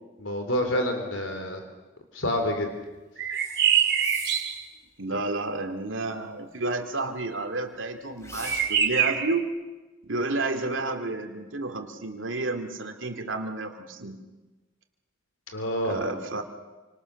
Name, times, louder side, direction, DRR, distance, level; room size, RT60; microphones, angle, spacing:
voice 1, 0.2-1.6 2.1-2.7 10.5-10.7 15.5-16.0, left 1 dB, 90° left, 5 dB, 3.6 m, -28 dB
sound 1, 3.2-4.6 8.4-9.4, right 8 dB, 60° right, 2.8 m, -24 dB
sound 2, 3.3-4.7 8.2-9.0, left 1 dB, 15° left, 3.2 m, -42 dB
voice 2, 5.0-9.5 10.0-14.2 15.8-16.4, right 2 dB, 85° right, 5 dB, 2.7 m, -31 dB
29.0 x 26.0 x 6.6 m, 1.2 s
head